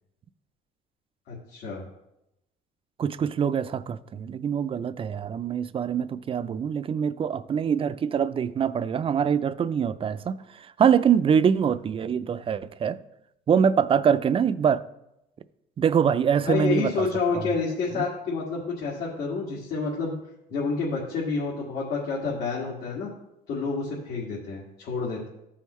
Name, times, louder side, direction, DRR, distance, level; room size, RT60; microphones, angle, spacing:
voice 1, 1.3-1.8 16.4-20.1 20.5-23.1 23.5-25.3, left 4 dB, 75° left, 2.0 m, -29 dB
voice 2, 3.0-13.0 13.5-14.8 15.8-17.1 17.3-17.5 17.9-18.0, right 7 dB, 35° right, 0.4 m, -24 dB
13.5 x 5.7 x 3.1 m
cardioid pair, 110°, 17 cm